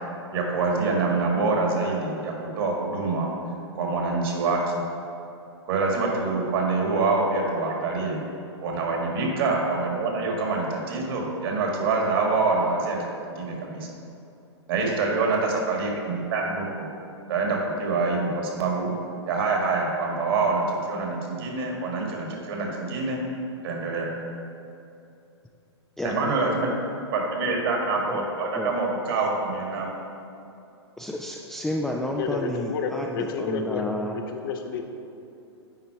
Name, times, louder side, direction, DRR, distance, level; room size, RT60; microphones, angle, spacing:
voice 1, 0.3-3.3 3.7-4.8 5.7-8.2 8.6-13.0 13.3-13.9 14.7-16.9 17.3-18.9 19.3-23.2 23.6-24.1 26.0-26.7 27.1-29.9, right 3 dB, 55° right, 0 dB, 1.8 m, -25 dB
voice 2, 26.0-26.7 28.1-28.2 28.5-28.8 31.0-33.1 33.4-34.2, left 1 dB, 5° left, -1 dB, 0.3 m, -31 dB
voice 3, 32.1-33.9 34.3-34.8, left 5 dB, 55° left, 5 dB, 0.8 m, -30 dB
9.6 x 4.0 x 4.5 m, 2.7 s
hypercardioid pair, 115°, 15 cm